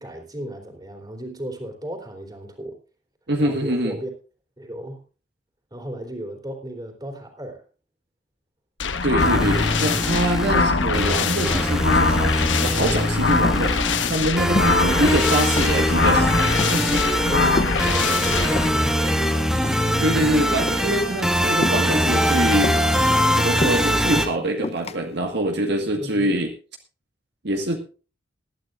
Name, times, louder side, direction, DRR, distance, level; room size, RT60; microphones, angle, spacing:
voice 1, 0.0-2.8 3.4-4.1 4.6-5.0 5.7-7.6 17.0-19.6 26.0-26.3, equal, 20° right, 3 dB, 3.3 m, -35 dB
voice 2, 3.3-4.0 9.0-16.4 16.7-17.0 19.6-26.5 27.4-27.8, right 1 dB, 65° right, 3 dB, 1.7 m, -25 dB
sound 1, 8.8-18.7, left 4 dB, 90° left, 1.2 m, -23 dB
sound 2, 9.2-24.3, equal, 5° right, 1.7 m, -22 dB
sound 3, 11.5-12.0 12.4-12.8 13.2-14.9 15.2-16.0 16.3-17.0 17.6-18.9 19.5-20.3 20.6-20.9 21.6-22.1 22.6-24.0 24.6-25.0, left 2 dB, 35° left, 0.6 m, -30 dB
20.0 x 12.0 x 2.5 m, 0.35 s
head